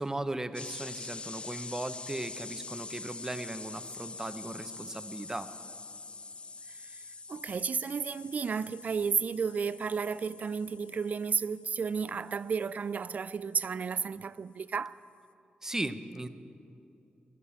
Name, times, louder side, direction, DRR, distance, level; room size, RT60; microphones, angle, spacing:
voice 1, 0.0-5.5 15.6-16.3, right 1 dB, 15° right, 0.7 m, -37 dB
sound 1, 0.5-14.1, left 4 dB, 35° left, 0.4 m, -46 dB
voice 2, 6.7-7.0 7.3-15.0, right 6 dB, 55° right, 0.3 m, -32 dB
16.0 x 11.0 x 7.0 m
cardioid pair, 90°, 3 cm